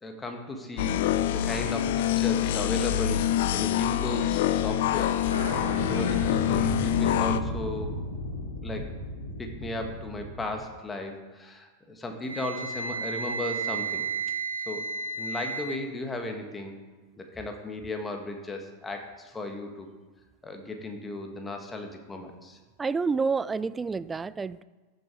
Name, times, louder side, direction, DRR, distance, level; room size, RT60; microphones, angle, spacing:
voice 1, 0.0-3.2 3.5-5.2 5.8-7.9 8.3-8.9 9.4-14.1 14.7-14.9 15.2-16.7 17.2-19.9 20.4-22.6, left 2 dB, 15° left, 3 dB, 1.7 m, -36 dB
sound 1, 0.8-7.4, left 11 dB, 55° left, 0.5 m, -26 dB
sound 2, 5.3-10.6, left 1 dB, 70° left, 2.7 m, -33 dB
Wind instrument woodwind instrument, 12.3-15.8, right 4 dB, 80° right, 0.7 m, -32 dB
voice 2, 22.8-24.6, right 4 dB, 15° right, 18 dB, 0.3 m, -28 dB
14.5 x 6.7 x 4.9 m, 1.3 s
figure-of-eight pair, 90°, 0 cm